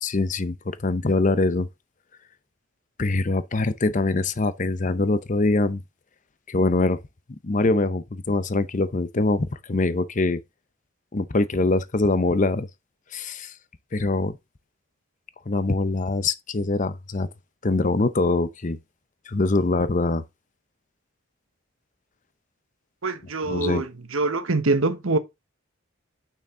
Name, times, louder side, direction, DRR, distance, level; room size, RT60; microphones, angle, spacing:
voice 1, 0.0-1.7 3.0-5.8 6.5-7.0 7.4-10.4 11.1-12.7 13.1-13.5 13.9-14.4 15.5-17.3 17.6-18.8 19.3-20.2 23.5-23.8, left 2 dB, 35° left, 0.6 m, -23 dB
voice 2, 23.0-25.2, right 3 dB, 80° right, 1.1 m, -24 dB
6.8 x 5.9 x 3.7 m
head